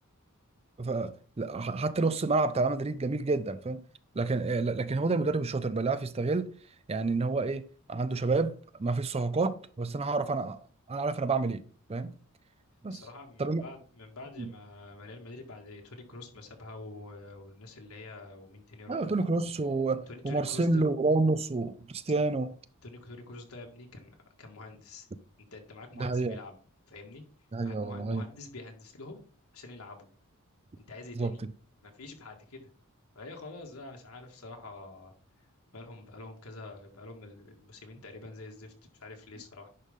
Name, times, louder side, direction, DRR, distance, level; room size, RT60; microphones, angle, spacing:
voice 1, 0.8-3.8 4.2-6.5 6.9-10.6 10.9-11.6 11.9-12.1 12.8-13.0 13.4-13.6 14.4-14.5 18.9-22.5 26.0-26.4 27.5-28.2 31.2-31.4, right 3 dB, 25° right, 0.5 m, -29 dB
voice 2, 12.9-19.1 20.1-20.8 22.8-25.1 25.5-26.6 26.9-27.2 27.6-29.2 29.5-30.1 30.8-31.4 31.8-32.6 33.1-35.1 35.7-39.7, left 2 dB, 75° left, 2.1 m, -46 dB
10.5 x 5.3 x 3.6 m
head